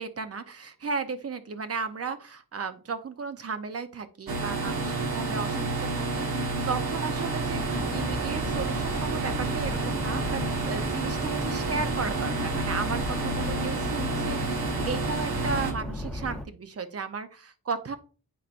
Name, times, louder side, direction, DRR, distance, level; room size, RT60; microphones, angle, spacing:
voice 1, 0.0-17.9, right 5 dB, 40° right, 10 dB, 0.7 m, -35 dB
sound 1, 4.3-15.7, right 3 dB, 85° right, 1.3 m, -30 dB
sound 2, 7.4-16.5, left 1 dB, ahead, 0.8 m, -35 dB
8.4 x 5.7 x 2.5 m, 0.37 s
wide cardioid pair, 180°, 35 cm